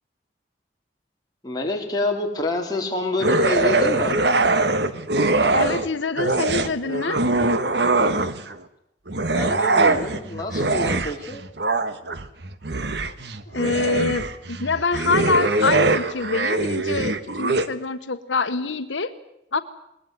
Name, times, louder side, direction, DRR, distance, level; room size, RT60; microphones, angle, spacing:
voice 1, 1.4-4.2 9.3-11.4, left 2 dB, 20° left, 0 dB, 4.1 m, -27 dB
sound 1, 3.2-5.9 6.2-8.6 9.1-17.7, right 2 dB, 65° right, 1.4 m, -22 dB
voice 2, 5.2-7.2 13.5-19.1 19.5-19.6, left 4 dB, 90° left, 10 dB, 1.1 m, -25 dB
21.0 x 20.5 x 9.4 m, 0.83 s
head